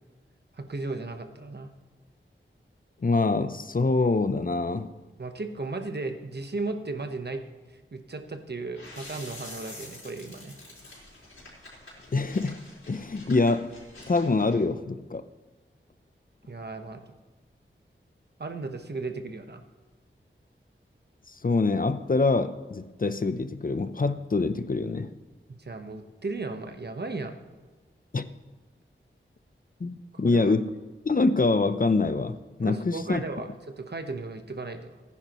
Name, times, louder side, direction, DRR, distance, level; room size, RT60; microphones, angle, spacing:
voice 1, 0.5-1.7 5.2-7.4 7.9-10.6 16.5-17.1 18.4-19.6 25.6-27.4 30.1-30.5 32.6-35.0, right 3 dB, 55° right, 7 dB, 1.1 m, -35 dB
voice 2, 3.0-5.0 12.1-13.7 14.1-15.2 21.3-25.1 28.1-28.3 29.8-30.7 31.1-33.2, left 3 dB, 45° left, 11 dB, 0.7 m, -25 dB
sound 1, 8.7-14.6, left 2 dB, 85° left, 4.3 m, -47 dB
18.5 x 10.0 x 3.1 m, 1.3 s
wide cardioid pair, 65°, 21 cm